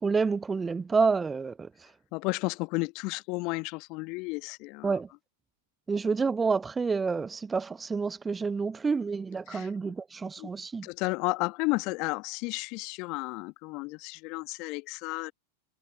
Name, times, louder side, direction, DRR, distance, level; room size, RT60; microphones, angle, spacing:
voice 1, 0.0-1.7 4.8-5.1 5.9-10.9, right 4 dB, 15° right, 0.9 m, -28 dB
voice 2, 2.1-4.9 9.5-9.7 10.4-10.5 10.8-15.3, left 27 dB, 40° left, 1.4 m, -32 dB
figure-of-eight pair, 90°, 0 cm